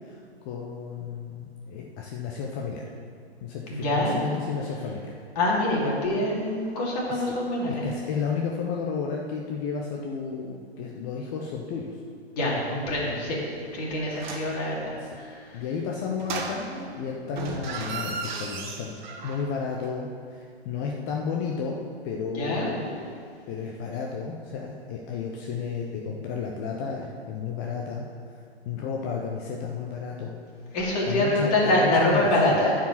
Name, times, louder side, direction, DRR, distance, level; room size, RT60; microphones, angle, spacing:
voice 1, 0.0-2.8 3.4-5.1 7.1-7.4 7.7-12.0 12.9-13.0 15.0-15.1 15.5-19.0 19.2-23.1 23.5-28.0 28.6-30.4 31.1-32.6, left 5 dB, 15° left, -1 dB, 0.5 m, -32 dB
voice 2, 3.7-4.2 5.4-7.8 12.4-13.4 13.7-15.3 22.3-22.7 30.7-32.7, left 1 dB, 35° left, -4 dB, 2.7 m, -25 dB
sound 1, 14.1-14.6 16.2-17.0 17.3-19.6 19.8-19.9, right 4 dB, 45° right, 1.4 m, -35 dB
10.0 x 4.9 x 7.3 m, 2.2 s
figure-of-eight pair, 130°, 32 cm